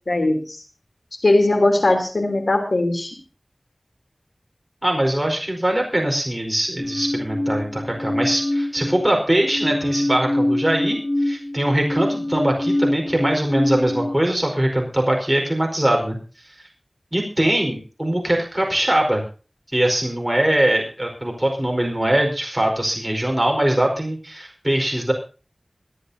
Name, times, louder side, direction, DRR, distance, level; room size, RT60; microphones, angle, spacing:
voice 1, 0.1-0.6 1.2-3.1, left 2 dB, 90° left, 4 dB, 3.4 m, -19 dB
voice 2, 4.8-16.2 17.1-19.2 19.7-25.1, right 1 dB, 15° right, 1 dB, 4.7 m, -21 dB
sound 1, 6.8-9.1 9.5-14.1, left 1 dB, 55° left, 6.3 m, -24 dB
25.0 x 10.5 x 2.8 m, 0.35 s
wide cardioid pair, 55°, 0 cm